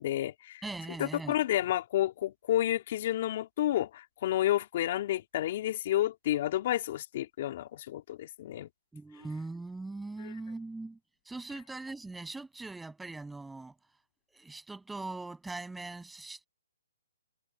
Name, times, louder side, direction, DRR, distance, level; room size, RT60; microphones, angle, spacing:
voice 1, 0.0-0.6 1.0-8.7 10.2-10.3, left 13 dB, 40° left, 2.8 m, -30 dB
voice 2, 0.6-1.3 8.9-11.0 11.3-13.8 14.3-16.5, right 3 dB, 5° right, 7.0 m, -41 dB
hypercardioid pair, 160°, 0 cm